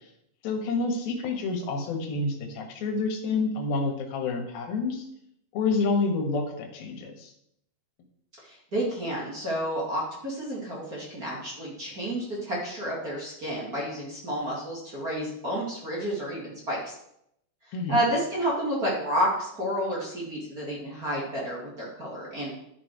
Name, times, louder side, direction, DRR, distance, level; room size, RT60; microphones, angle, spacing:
voice 1, 0.4-5.0 5.5-7.3 17.7-18.0, left 3 dB, 90° left, 4 dB, 3.2 m, -28 dB
voice 2, 8.4-16.9 17.9-22.5, equal, 30° right, -4 dB, 2.2 m, -30 dB
11.0 x 6.3 x 4.7 m, 0.76 s
omnidirectional pair, 4.2 m